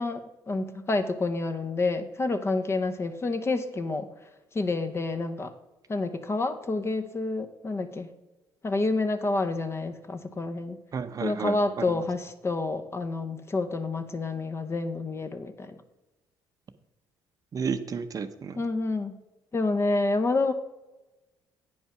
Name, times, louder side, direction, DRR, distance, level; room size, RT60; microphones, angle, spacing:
voice 1, 0.0-4.1 4.5-5.5 5.9-8.1 8.6-10.8 11.2-15.8 18.5-19.2 19.5-20.5, left 3 dB, 30° left, 9 dB, 0.9 m, -28 dB
voice 2, 10.9-12.0 17.5-18.6, right 6 dB, 40° right, 10 dB, 0.7 m, -32 dB
9.0 x 5.4 x 5.9 m, 1.1 s
supercardioid pair, 80°, 9 cm